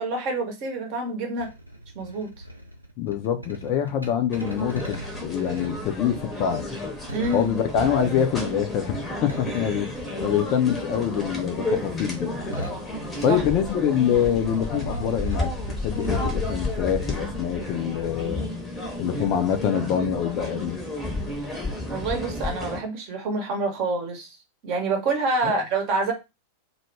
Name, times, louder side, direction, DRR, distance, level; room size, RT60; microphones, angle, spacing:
voice 1, 0.0-1.5 1.9-2.3 7.1-7.5 13.3-13.4 21.9-24.4 24.6-26.1, right 3 dB, 40° right, 0.8 m, -27 dB
sound 1, 1.4-10.7 10.9-13.8 14.0-16.5, right 1 dB, 85° right, 0.5 m, -39 dB
voice 2, 3.0-6.7 7.3-9.9 10.2-12.4 13.2-15.5 15.8-18.5 19.0-20.8 25.4-25.5, left 9 dB, 40° left, 0.4 m, -25 dB
sound 2, 4.3-22.8, left 2 dB, 10° left, 0.8 m, -31 dB
2.2 x 2.1 x 3.2 m
figure-of-eight pair, 90°, 0 cm